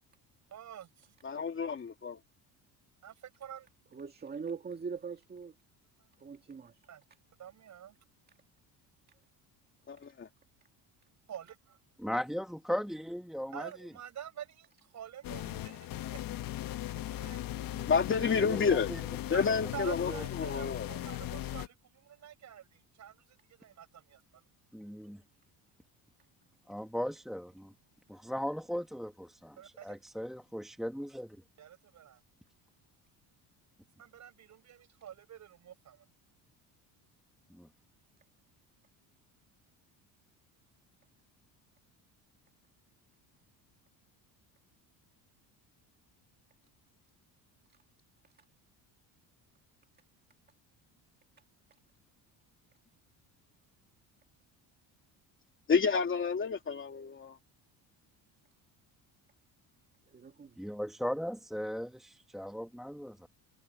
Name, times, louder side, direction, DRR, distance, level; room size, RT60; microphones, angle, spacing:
voice 1, 0.5-1.1 3.0-3.7 6.9-7.0 7.4-8.0 11.3-11.8 13.5-16.2 16.9-17.5 19.3-19.5 19.7-23.2 23.6-24.4 29.6-30.0 31.6-32.2 34.0-36.1, right 9 dB, 45° right, 5.7 m, -47 dB
voice 2, 1.2-2.2 9.9-10.3 17.8-18.9 19.3-20.1 20.4-20.9 55.7-57.4, left 5 dB, 30° left, 2.8 m, -30 dB
voice 3, 3.9-5.5 6.2-6.7 60.1-60.5, right 5 dB, 25° right, 2.2 m, -41 dB
voice 4, 12.0-13.9 18.4-19.0 20.1-20.2 24.7-25.2 26.7-27.7 28.1-31.4 37.5-37.7 60.6-63.3, equal, ahead, 1.3 m, -38 dB
sound 1, 15.2-21.7, left 14 dB, 55° left, 1.3 m, -38 dB
cardioid pair, 140°, 41 cm